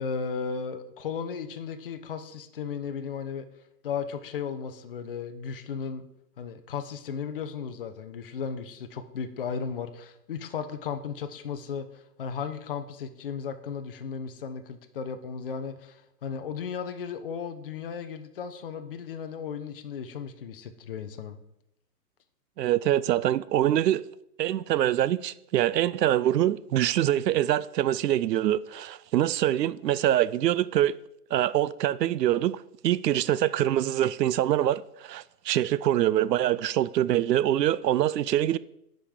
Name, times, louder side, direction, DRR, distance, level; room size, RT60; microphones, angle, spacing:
voice 1, 0.0-3.5 3.8-6.1 6.4-21.4, left 6 dB, 35° left, 0.6 m, -35 dB
voice 2, 22.6-24.0 24.4-30.9 31.3-38.6, right 12 dB, 90° right, 0.5 m, -24 dB
5.7 x 5.1 x 6.4 m
hypercardioid pair, 155°, 48 cm